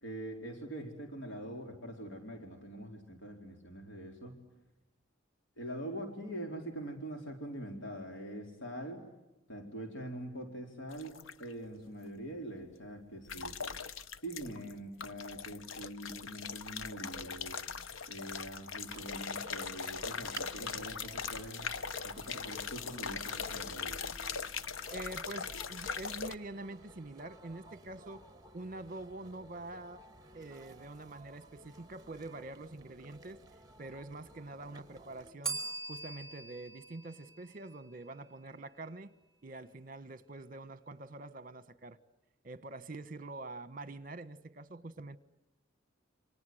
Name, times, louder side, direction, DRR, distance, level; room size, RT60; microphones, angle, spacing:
voice 1, 0.0-4.3 5.6-9.0 9.5-13.5 14.2-17.6 18.1-21.7 22.0-24.0, right 1 dB, 70° left, 4.3 m, -44 dB
sound 1, 10.9-11.5 13.3-14.7 15.0-26.3, left 6 dB, 85° left, 1.0 m, -40 dB
sound 2, 18.9-35.3, right 2 dB, 20° right, 1.8 m, -55 dB
voice 2, 24.9-28.2 28.5-30.0 30.3-33.4 33.8-35.6 35.9-39.1 39.4-42.0 42.4-45.2, right 2 dB, 45° right, 1.3 m, -45 dB
Bell, 35.4-38.3, right 3 dB, ahead, 5.2 m, -42 dB
29.0 x 26.0 x 7.9 m
head